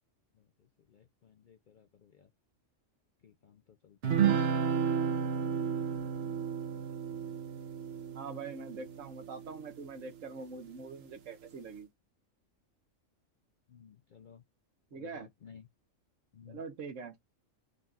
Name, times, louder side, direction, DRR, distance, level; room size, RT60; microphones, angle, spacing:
voice 1, 0.9-2.3 3.2-4.5 13.7-14.4 14.9-15.6 16.3-16.6, left 7 dB, 60° left, 0.5 m, -56 dB
sound 1, 4.0-9.7, right 7 dB, 55° right, 0.9 m, -32 dB
voice 2, 8.1-11.9 14.9-15.3 16.5-17.1, right 4 dB, 75° right, 1.4 m, -43 dB
3.9 x 2.3 x 3.9 m
omnidirectional pair, 1.4 m